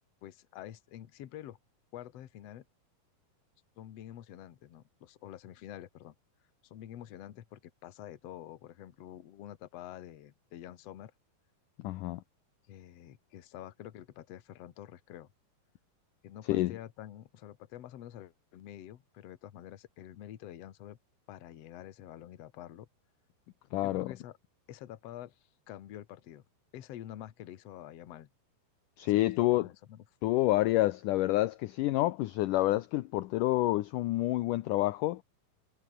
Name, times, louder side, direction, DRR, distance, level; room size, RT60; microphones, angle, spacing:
voice 1, 0.2-1.6 1.9-2.7 3.8-6.2 6.6-11.1 12.7-15.3 16.2-21.0 21.3-22.9 23.8-24.4 24.7-25.4 25.7-26.4 26.7-28.3 29.0-30.0, left 12 dB, 60° left, 1.8 m, -47 dB
voice 2, 11.8-12.2 16.5-16.7 23.7-24.1 29.0-29.7 30.2-35.2, left 17 dB, 75° left, 1.9 m, -28 dB
omnidirectional pair, 4.5 m